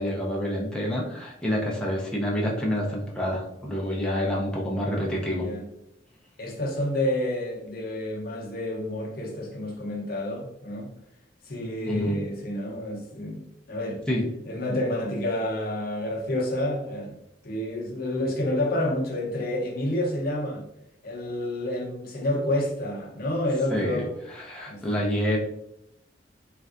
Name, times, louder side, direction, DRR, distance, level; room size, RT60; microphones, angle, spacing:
voice 1, 0.0-5.5 11.9-12.1 14.1-14.2 23.7-25.4, equal, 5° left, 0.5 m, -28 dB
voice 2, 6.4-10.9 11.4-14.0 14.5-17.1 17.4-20.6 21.0-24.1 24.7-25.1, left 1 dB, 55° left, 0.6 m, -29 dB
3.2 x 2.5 x 2.4 m
head